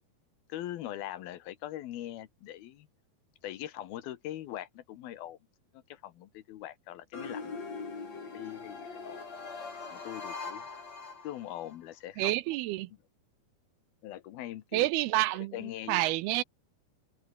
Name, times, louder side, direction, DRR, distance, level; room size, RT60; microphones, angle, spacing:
voice 1, 0.5-2.9 3.4-5.4 5.7-7.5 8.0-8.1 8.3-9.2 9.9-10.6 11.2-12.4 14.0-14.9 15.5-16.1, left 13 dB, 75° left, 2.9 m, -41 dB
sound 1, 7.1-11.8, left 4 dB, 40° left, 6.1 m, -41 dB
voice 2, 12.2-12.9 14.7-15.5 15.9-16.4, right 18 dB, 80° right, 2.5 m, -28 dB
open air
omnidirectional pair, 4.7 m